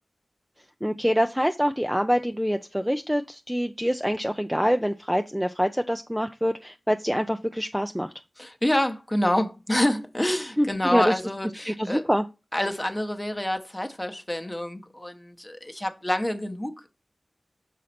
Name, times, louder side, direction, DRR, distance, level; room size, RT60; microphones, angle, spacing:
voice 1, 0.8-8.1 10.6-11.2 11.6-12.3, equal, ahead, 0.4 m, -25 dB
voice 2, 8.4-12.0 12.5-16.9, left 1 dB, 20° left, 0.9 m, -27 dB
6.4 x 4.1 x 4.2 m
wide cardioid pair, 85°, 0 cm